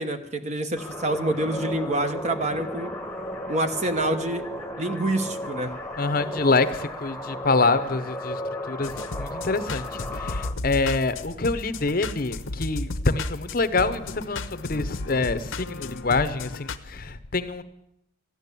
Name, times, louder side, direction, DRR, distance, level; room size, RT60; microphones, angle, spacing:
voice 1, 0.0-2.9 3.5-4.4 4.8-5.7, right 1 dB, 35° right, 8 dB, 1.0 m, -27 dB
sound 1, 0.8-10.5, left 1 dB, 5° left, 1.1 m, -34 dB
voice 2, 6.0-8.4 8.7-17.6, left 3 dB, 45° left, 12 dB, 0.8 m, -26 dB
sound 2, 8.8-16.8, left 2 dB, 80° left, 0.9 m, -34 dB
14.5 x 10.5 x 8.3 m, 0.82 s
head